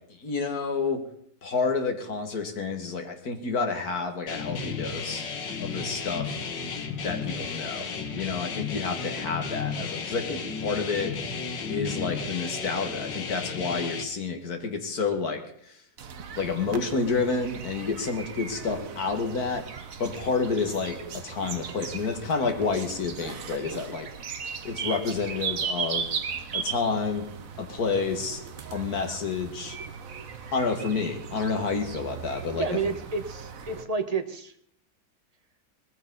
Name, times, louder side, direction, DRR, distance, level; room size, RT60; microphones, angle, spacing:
voice 1, 0.2-1.0 1.4-5.2 5.6-6.3 7.0-7.9 8.1-11.1 11.7-15.7 16.4-19.6 20.0-24.1 24.6-26.1 26.5-27.3 27.6-28.4 28.7-29.8 30.5-32.8, left 4 dB, 60° left, 5 dB, 2.5 m, -29 dB
sound 1, 4.3-14.0, left 5 dB, 90° left, 2.2 m, -33 dB
sound 2, 16.0-33.8, right 6 dB, 55° right, 1.4 m, -37 dB
voice 2, 32.5-34.5, right 4 dB, 25° right, 7 dB, 1.2 m, -30 dB
20.0 x 15.0 x 4.1 m, 0.65 s
omnidirectional pair, 1.9 m